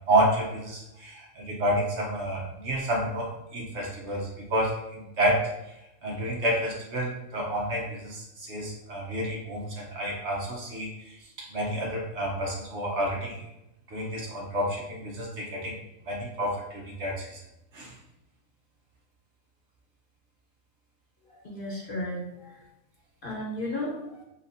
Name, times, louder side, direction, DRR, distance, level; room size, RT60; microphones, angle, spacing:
voice 1, 0.1-5.7 6.0-13.4 13.9-15.8 16.0-17.4 17.7-17.9, right 1 dB, 60° right, -2 dB, 1.2 m, -29 dB
voice 2, 21.4-22.6 23.2-24.2, left 1 dB, 45° left, -3 dB, 1.0 m, -34 dB
6.8 x 2.5 x 2.7 m, 0.89 s
omnidirectional pair, 1.4 m